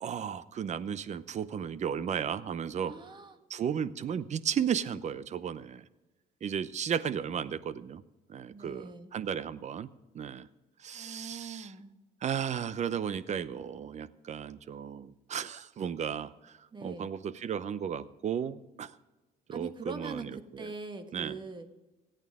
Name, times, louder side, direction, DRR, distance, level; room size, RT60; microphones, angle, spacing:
voice 1, 0.0-2.9 3.5-5.8 6.4-8.0 8.3-9.9 10.1-10.5 10.8-11.7 12.2-16.5 16.8-18.9 19.5-20.3 20.6-20.7 21.1-21.3, right 8 dB, 45° right, 15 dB, 0.7 m, -34 dB
voice 2, 2.8-3.4 8.5-9.1 10.9-11.9 16.7-17.1 19.5-21.7, right 3 dB, 25° right, 8 dB, 1.5 m, -42 dB
26.5 x 9.1 x 3.6 m, 1.1 s
cardioid pair, 110°, 17 cm